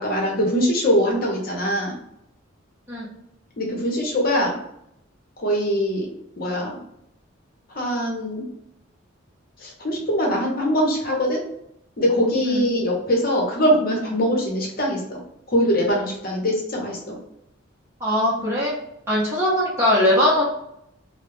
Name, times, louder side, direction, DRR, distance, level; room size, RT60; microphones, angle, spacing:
voice 1, 0.0-2.0 3.6-4.5 5.4-6.1 6.4-6.8 7.7-8.4 9.6-11.4 12.0-15.2 15.5-17.1, equal, 45° left, -1 dB, 0.7 m, -22 dB
voice 2, 18.0-18.7 19.1-20.4, left 1 dB, 15° right, -7 dB, 0.7 m, -20 dB
2.3 x 2.0 x 3.1 m, 0.77 s
head